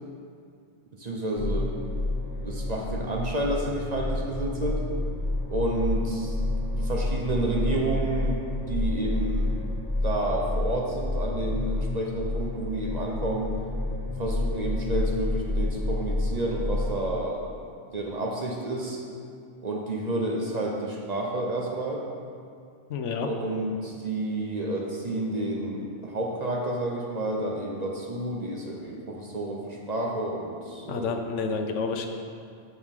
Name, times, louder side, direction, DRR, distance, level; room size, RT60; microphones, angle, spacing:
voice 1, 1.0-1.7 2.4-4.8 5.5-6.3 6.8-8.4 8.7-9.5 10.0-13.6 14.2-17.5 17.9-19.0 19.6-22.0 23.2-31.1, right 1 dB, 40° right, -1 dB, 0.8 m, -30 dB
sound 1, 1.4-16.9, left 1 dB, 20° left, 1.5 m, -29 dB
voice 2, 22.9-23.3 30.9-32.2, left 5 dB, 80° left, 5 dB, 1.0 m, -29 dB
12.0 x 4.7 x 3.7 m, 2.3 s
omnidirectional pair, 1.2 m